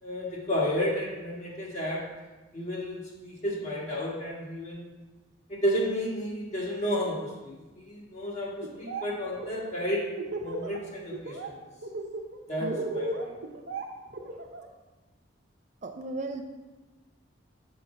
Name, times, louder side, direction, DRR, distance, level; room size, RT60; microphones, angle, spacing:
voice 1, 0.0-2.0 2.5-4.9 5.5-7.5 7.8-10.0 10.4-11.5 12.5-13.3, equal, 35° left, -3 dB, 1.6 m, -32 dB
Laughter, 8.6-9.0 9.3-10.8 11.1-11.5 11.8-14.7, right 2 dB, 70° right, 0.8 m, -35 dB
voice 2, 15.8-16.4, right 3 dB, 40° right, 5 dB, 0.4 m, -35 dB
6.4 x 4.4 x 5.7 m, 1.2 s
head